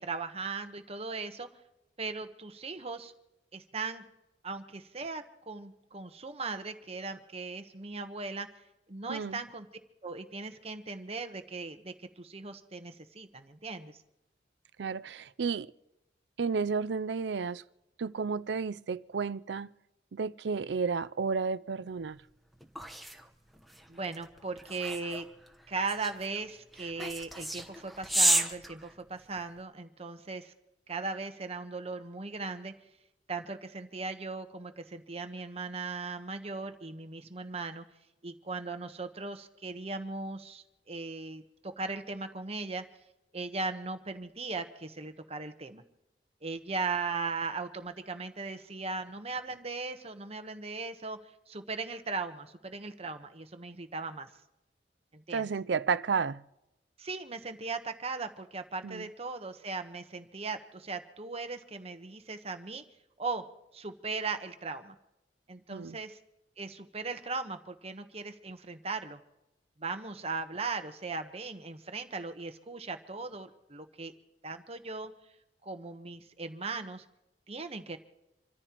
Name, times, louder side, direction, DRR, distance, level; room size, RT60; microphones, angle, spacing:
voice 1, 0.0-1.5 2.0-3.1 3.5-4.0 4.4-8.5 8.9-9.7 10.0-14.0 23.9-25.3 25.7-30.5 30.9-32.7 33.3-37.8 38.2-42.8 43.3-45.8 46.4-51.2 51.5-54.3 55.1-55.5 57.0-62.8 63.2-63.4 63.7-64.9 65.5-66.2 66.6-69.2 69.8-74.1 74.4-75.1 75.6-77.0 77.5-78.0, right 4 dB, 35° right, 1.1 m, -38 dB
voice 2, 9.1-9.4 14.8-15.7 16.4-17.6 18.0-19.7 20.1-22.2 55.3-56.4 58.8-59.1 65.7-66.0, right 5 dB, 75° right, 0.5 m, -32 dB
sound 1, 22.1-29.6, right 1 dB, ahead, 1.1 m, -33 dB
27.5 x 14.0 x 3.0 m
head